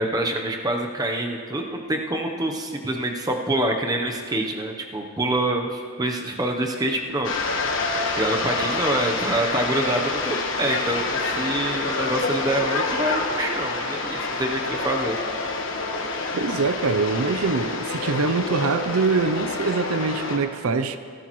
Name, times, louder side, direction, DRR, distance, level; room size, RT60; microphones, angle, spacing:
voice 1, 0.0-7.3 8.2-15.2, right 1 dB, 15° right, 2 dB, 0.8 m, -26 dB
sound 1, 7.2-20.4, left 3 dB, 60° left, 1.3 m, -27 dB
voice 2, 16.3-21.0, right 4 dB, 80° right, 10 dB, 0.6 m, -24 dB
16.5 x 13.5 x 3.1 m, 2.1 s
head